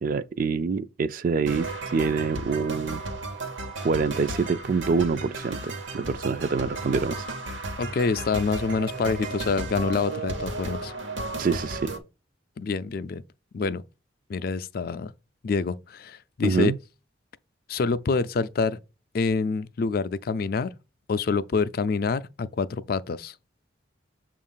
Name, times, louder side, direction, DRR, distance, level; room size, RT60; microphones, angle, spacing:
voice 1, 0.0-3.0 3.8-7.3 11.4-11.9 16.4-16.8, right 4 dB, 45° right, 0.3 m, -26 dB
sound 1, 1.5-12.0, right 2 dB, 80° right, 1.0 m, -34 dB
voice 2, 7.8-10.9 12.6-13.2 13.5-13.8 14.3-15.1 15.4-16.7 17.7-18.8 19.1-20.7 21.1-23.3, left 4 dB, 50° left, 0.4 m, -26 dB
7.1 x 2.5 x 5.4 m
head